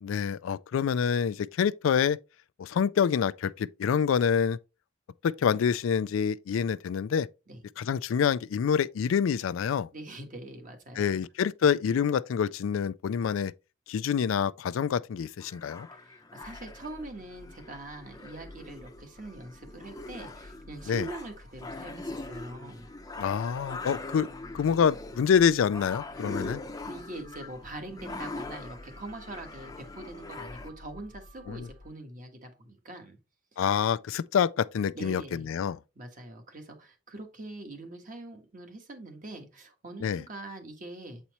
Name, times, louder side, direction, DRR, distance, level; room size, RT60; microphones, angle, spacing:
voice 1, 0.0-2.2 2.6-4.6 5.2-7.3 7.8-9.9 11.0-13.5 13.9-15.9 20.9-21.1 23.2-24.3 24.5-26.6 31.5-31.7 33.6-35.8 40.0-40.2, left 7 dB, 75° left, 0.3 m, -26 dB
voice 2, 9.9-11.2 15.9-22.9 26.2-26.3 26.8-33.2 34.9-35.5 35.9-41.2, right 2 dB, 40° right, 1.4 m, -43 dB
sound 1, 15.4-30.7, left 2 dB, 20° left, 0.6 m, -42 dB
sound 2, 16.4-31.9, left 1 dB, 70° right, 2.2 m, -52 dB
8.1 x 4.2 x 3.0 m
head